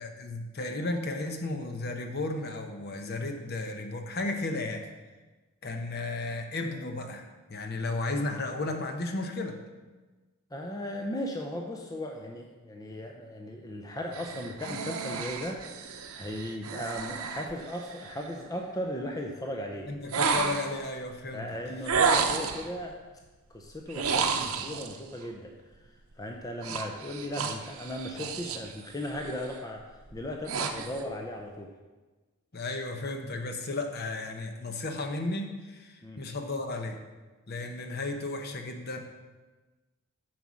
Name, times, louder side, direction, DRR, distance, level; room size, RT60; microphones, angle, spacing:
voice 1, 0.0-4.8 5.6-9.6 19.9-21.5 32.5-37.0 37.5-39.0, left 2 dB, 45° left, 5 dB, 0.8 m, -34 dB
voice 2, 10.5-19.9 21.3-22.9 23.5-25.5 26.2-29.8 30.1-31.7 36.0-36.2, left 1 dB, 15° left, 1 dB, 0.6 m, -37 dB
sound 1, 14.1-18.3 20.1-20.9 21.9-22.7 23.9-25.0 26.6-28.7 29.1-29.5 30.0-31.1, right 5 dB, 80° right, 0.7 m, -31 dB
9.3 x 4.8 x 6.2 m, 1.2 s
head